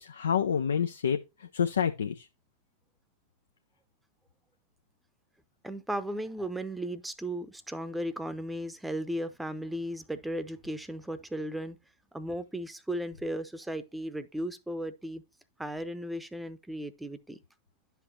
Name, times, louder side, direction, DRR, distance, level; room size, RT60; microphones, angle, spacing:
voice 1, 0.0-2.3, left 7 dB, 70° left, 0.4 m, -28 dB
voice 2, 5.6-11.8 12.1-15.2 15.6-17.4, equal, 5° right, 0.7 m, -36 dB
10.5 x 5.8 x 2.7 m
figure-of-eight pair, 90°, 0 cm